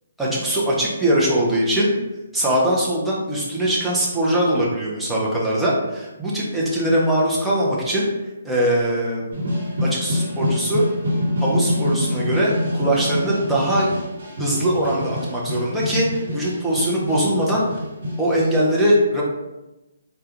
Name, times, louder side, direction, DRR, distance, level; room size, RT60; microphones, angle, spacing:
voice 1, 0.2-1.9 2.3-8.1 8.4-9.5 9.8-10.8 11.4-13.9 14.4-17.8 18.2-19.2, right 1 dB, ahead, -7 dB, 0.5 m, -21 dB
sound 1, 9.3-18.5, left 1 dB, 60° right, 1.1 m, -25 dB
3.6 x 2.2 x 2.8 m, 1.0 s
hypercardioid pair, 170°, 0 cm